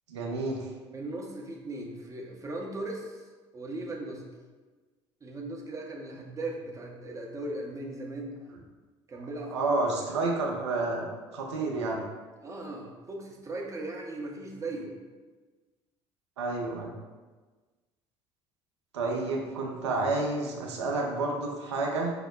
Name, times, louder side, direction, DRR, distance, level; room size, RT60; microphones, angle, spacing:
voice 1, 0.1-0.7 9.5-12.0 16.4-16.9 18.9-22.1, right 2 dB, 75° right, 0 dB, 0.5 m, -30 dB
voice 2, 0.9-3.2 3.5-4.2 5.2-8.4 9.1-10.1 12.4-14.9, right 2 dB, 20° right, -1 dB, 0.6 m, -38 dB
4.9 x 2.0 x 2.3 m, 1.3 s
figure-of-eight pair, 55°, 14 cm